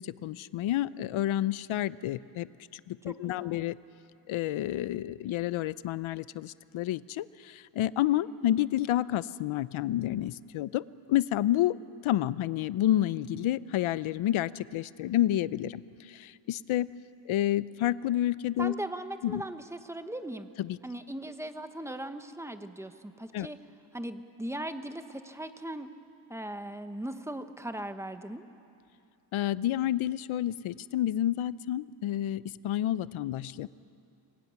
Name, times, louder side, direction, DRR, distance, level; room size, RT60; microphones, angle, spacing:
voice 1, 0.0-2.5 2.7-3.8 4.3-11.8 12.0-16.9 17.3-18.7 19.2-19.4 20.6-20.8 23.3-23.5 29.3-33.7, left 13 dB, 75° left, 17 dB, 0.7 m, -29 dB
voice 2, 3.1-3.6 18.6-20.5 20.8-23.6 23.9-25.9 26.3-28.4, right 1 dB, 5° right, 8 dB, 1.0 m, -39 dB
24.5 x 21.5 x 9.6 m, 2.6 s
wide cardioid pair, 155°, 49 cm